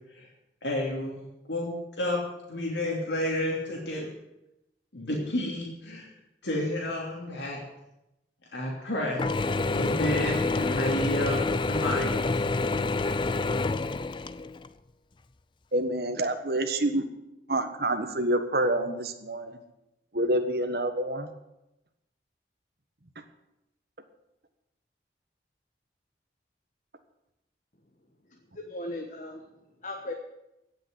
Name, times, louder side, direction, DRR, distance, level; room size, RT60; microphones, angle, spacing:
voice 1, 0.6-2.2 2.5-4.1 4.9-6.1 6.4-7.6 8.5-9.2 9.7-12.1, left 1 dB, 85° left, -3 dB, 2.9 m, -30 dB
Mechanisms / Drill, 9.2-14.7, left 3 dB, 25° left, 0.4 m, -27 dB
voice 2, 15.7-17.0 17.5-19.6 20.1-21.3, right 1 dB, 60° right, 6 dB, 1.4 m, -27 dB
voice 3, 28.3-29.4 29.8-30.1, left 1 dB, 45° left, 2 dB, 1.4 m, -37 dB
16.5 x 6.6 x 9.3 m, 0.90 s
head